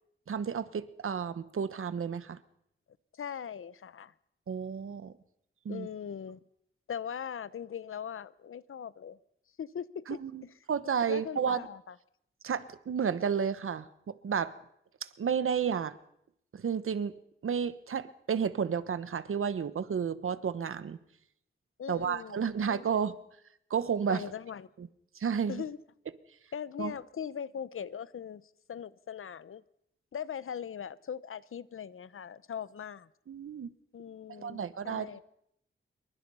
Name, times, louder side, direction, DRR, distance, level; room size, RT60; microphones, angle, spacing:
voice 1, 0.3-2.4 4.5-5.1 5.6-5.9 10.1-10.4 10.7-11.6 12.4-14.5 15.0-16.0 16.5-21.0 21.9-23.2 23.7-24.2 25.2-25.6 26.8-26.9 33.3-33.7 34.4-35.2, right 7 dB, 80° right, 1.1 m, -32 dB
voice 2, 3.1-4.1 5.7-6.4 6.9-9.2 9.6-10.5 11.1-12.0 21.8-23.0 24.1-24.7 25.5-25.8 26.5-28.4 28.7-29.6 30.1-33.1 33.9-35.2, left 8 dB, 80° left, 0.8 m, -40 dB
27.0 x 23.0 x 5.6 m
wide cardioid pair, 150°, 21 cm